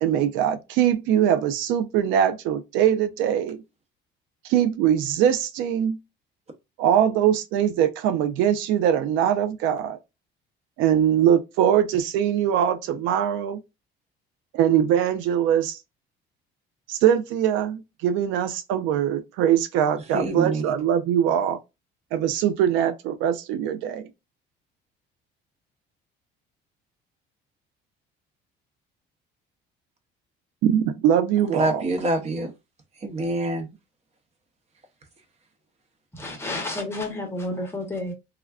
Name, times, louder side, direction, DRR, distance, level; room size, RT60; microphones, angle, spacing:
voice 1, 0.0-3.6 4.4-6.0 6.8-10.0 10.8-13.6 14.5-15.8 16.9-21.6 22.1-24.1 30.6-31.8, right 10 dB, 85° right, 0.4 m, -22 dB
voice 2, 20.1-20.7 31.4-32.5 33.0-33.7, right 2 dB, 35° right, 0.8 m, -26 dB
voice 3, 36.2-38.1, left 2 dB, 10° left, 0.8 m, -30 dB
3.4 x 2.2 x 2.3 m
cardioid pair, 150°, 20 cm